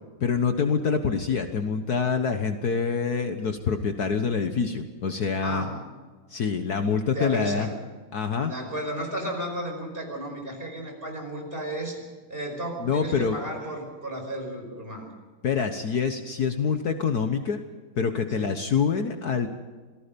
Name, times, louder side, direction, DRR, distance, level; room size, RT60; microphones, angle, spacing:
voice 1, 0.2-5.6 6.3-7.7 8.1-8.5 12.8-13.4 15.4-17.6 18.0-19.5, left 5 dB, 55° left, 7 dB, 1.6 m, -26 dB
voice 2, 5.4-5.9 7.1-7.8 8.3-12.0 12.3-15.1 15.6-15.7 18.4-18.7, right 1 dB, 30° right, 2 dB, 5.5 m, -33 dB
27.0 x 19.0 x 5.3 m, 1.4 s
omnidirectional pair, 2.1 m